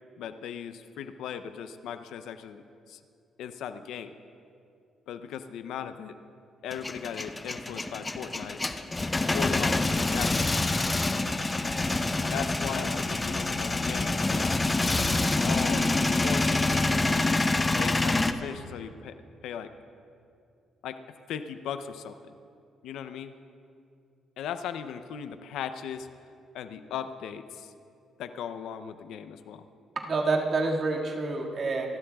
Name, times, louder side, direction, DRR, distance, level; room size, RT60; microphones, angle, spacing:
voice 1, 0.2-2.6 2.9-3.0 3.4-4.1 5.1-6.2 6.6-8.6 9.3-10.6 12.3-14.5 15.4-19.2 19.4-19.7 20.8-22.2 22.8-23.4 24.4-26.1 26.5-27.7 28.2-29.6, left 8 dB, 85° left, 10 dB, 0.5 m, -38 dB
Male speech man speaking / Vehicle / Engine starting, 6.7-18.3, left 2 dB, 20° left, 0.6 m, -26 dB
voice 2, 30.0-32.0, right 3 dB, 50° right, -1 dB, 1.9 m, -28 dB
27.5 x 12.5 x 2.3 m, 2.5 s
cardioid pair, 90°, 0 cm